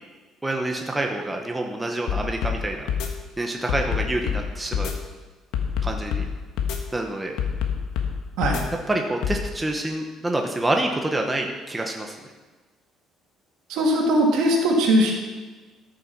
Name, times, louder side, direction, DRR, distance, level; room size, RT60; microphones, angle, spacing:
voice 1, 0.4-2.9 3.4-4.9 5.8-6.2 6.9-7.3 8.9-12.1, right 1 dB, 10° right, 2 dB, 0.8 m, -27 dB
sound 1, 2.1-2.6 2.9-3.1 3.7-4.4 4.7-4.9 5.5-6.3 6.6-6.8 7.4-8.1 8.4-8.6 9.2-9.4, left 8 dB, 75° left, 1.4 m, -25 dB
voice 2, 13.7-15.1, right 1 dB, 75° right, 0 dB, 2.4 m, -20 dB
13.5 x 6.6 x 5.9 m, 1.3 s
cardioid pair, 175°, 0 cm